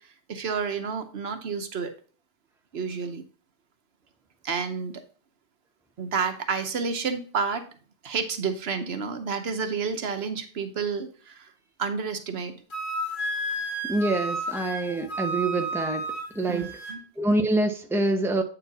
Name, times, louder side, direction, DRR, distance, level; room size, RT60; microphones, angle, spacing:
voice 1, 0.3-1.9 2.7-3.2 4.4-5.0 6.0-7.6 8.0-11.5 11.8-12.5 16.5-17.0, right 5 dB, 85° right, 8 dB, 1.2 m, -30 dB
Wind instrument woodwind instrument, 12.7-17.0, right 1 dB, 55° left, 1.2 m, -32 dB
voice 2, 13.9-16.0 16.3-16.7 17.2-18.4, right 2 dB, 5° right, 5 dB, 0.7 m, -25 dB
8.5 x 4.4 x 4.0 m, 0.40 s
omnidirectional pair, 1.0 m